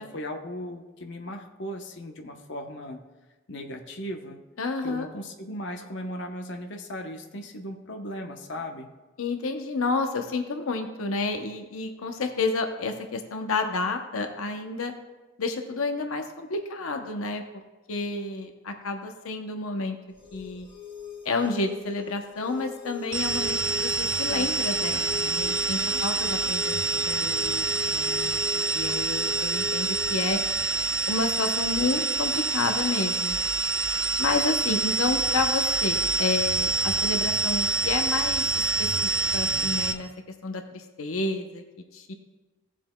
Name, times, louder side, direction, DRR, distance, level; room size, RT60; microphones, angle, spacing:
voice 1, 0.0-3.0 3.5-4.4 4.8-8.9, equal, 60° left, 3 dB, 0.8 m, -37 dB
voice 2, 4.6-5.1 9.2-14.9 15.4-17.4 17.9-20.0 20.3-20.7 21.2-30.4 31.1-33.4 34.2-38.5 38.8-40.1 40.4-41.6 41.9-42.1, left 3 dB, 85° left, 5 dB, 0.7 m, -30 dB
sound 1, 20.1-30.1, left 8 dB, 30° left, 3.3 m, -39 dB
sound 2, 23.1-39.9, right 3 dB, 65° right, 0.7 m, -26 dB
16.5 x 7.4 x 2.2 m, 1.2 s
head